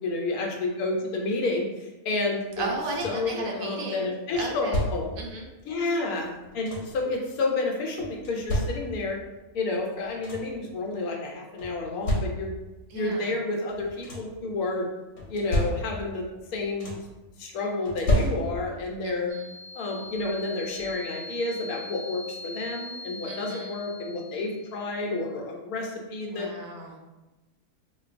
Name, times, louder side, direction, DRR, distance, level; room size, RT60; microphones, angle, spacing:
voice 1, 0.0-2.7 3.0-5.1 5.7-9.2 9.5-12.6 12.9-14.9 15.3-16.3 16.5-17.0 17.4-19.3 19.7-26.5, left 2 dB, 80° left, 0 dB, 1.1 m, -30 dB
sound 1, 2.6-3.4 4.3-5.3 6.2-7.1 8.0-9.2 9.8-9.9 10.0-10.7 11.6-12.7 13.7-14.4 15.2-16.2 16.5-17.2 17.9-18.8 20.1-20.2 20.8-20.9, left 1 dB, 60° left, 1.1 m, -31 dB
voice 2, 2.6-4.8 5.2-5.5 12.9-13.4 19.0-19.5 23.3-23.8 26.3-27.0, right 2 dB, 70° right, 1 dB, 0.9 m, -35 dB
sound 2, 19.3-25.0, left 2 dB, 40° right, 1.5 m, -42 dB
3.7 x 2.6 x 2.5 m, 1.1 s
omnidirectional pair, 1.6 m